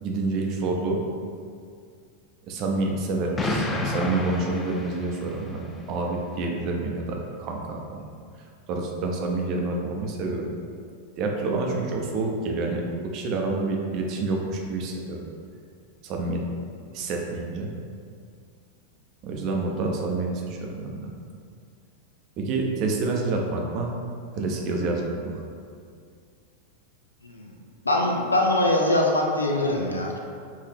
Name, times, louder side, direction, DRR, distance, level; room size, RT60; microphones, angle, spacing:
voice 1, 0.0-1.1 2.5-8.0 8.7-10.4 11.2-12.8 13.1-15.2 16.0-16.4 16.9-17.7 19.2-21.1 22.4-23.9 24.3-25.4, right 3 dB, 40° right, 0 dB, 0.6 m, -28 dB
Explosion, 3.4-5.6, left 2 dB, 15° left, 0.4 m, -30 dB
voice 2, 27.8-30.2, left 1 dB, 80° left, 0 dB, 0.5 m, -23 dB
4.7 x 2.7 x 3.4 m, 2.2 s
figure-of-eight pair, 90°, 0 cm